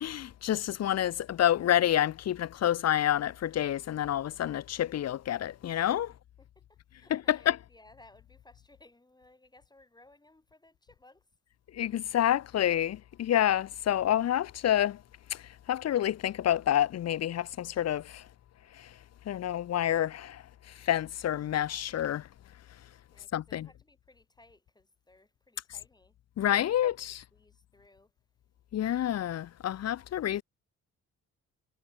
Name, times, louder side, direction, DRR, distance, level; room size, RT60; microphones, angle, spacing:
voice 1, 0.0-6.1 7.1-7.6 11.7-15.0 15.3-15.4 15.7-18.2 18.8-18.9 19.3-20.4 20.8-22.3 23.3-23.7 26.4-27.2 28.7-30.4, left 11 dB, 55° left, 0.9 m, -28 dB
voice 2, 6.1-11.2 23.1-26.8 27.3-28.1, left 2 dB, 15° left, 7.2 m, -60 dB
cardioid pair, 90°, 30 cm